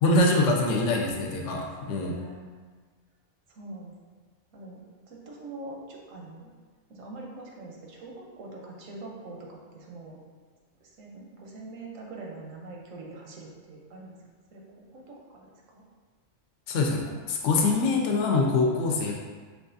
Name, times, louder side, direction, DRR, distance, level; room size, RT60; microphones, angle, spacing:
voice 1, 0.0-2.2 16.7-19.1, left 2 dB, 75° left, 0 dB, 0.9 m, -24 dB
voice 2, 2.1-2.6 3.5-3.9 4.5-4.8 5.1-6.5 6.9-10.2 10.8-14.2 14.5-15.5 15.7-15.8, right 2 dB, 85° right, -1 dB, 1.1 m, -43 dB
5.3 x 2.4 x 2.6 m, 1.5 s
omnidirectional pair, 1.3 m